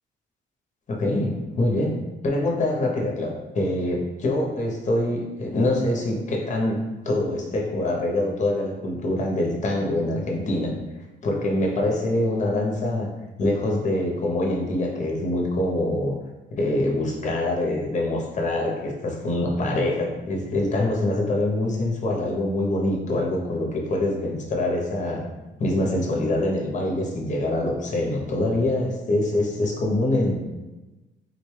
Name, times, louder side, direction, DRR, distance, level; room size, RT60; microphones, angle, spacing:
voice 1, 0.9-2.0 2.2-10.8 11.2-13.1 13.4-16.2 16.6-25.3 25.6-30.4, left 1 dB, 35° left, 0 dB, 0.6 m, -24 dB
3.8 x 2.2 x 3.1 m, 1.1 s
cardioid pair, 140°, 20 cm